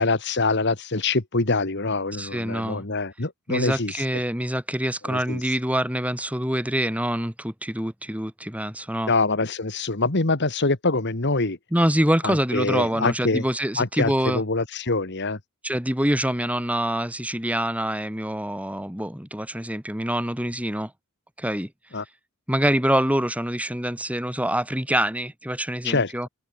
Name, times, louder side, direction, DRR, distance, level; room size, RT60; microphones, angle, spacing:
voice 1, 0.0-4.0 5.0-5.5 9.1-11.6 12.2-13.4 13.8-15.4 21.9-22.1 25.8-26.3, left 3 dB, 55° left, 1.8 m, -25 dB
voice 2, 2.2-2.8 3.5-9.1 11.7-14.4 15.6-20.9 21.4-21.7 22.5-26.3, right 1 dB, 5° right, 3.5 m, -25 dB
head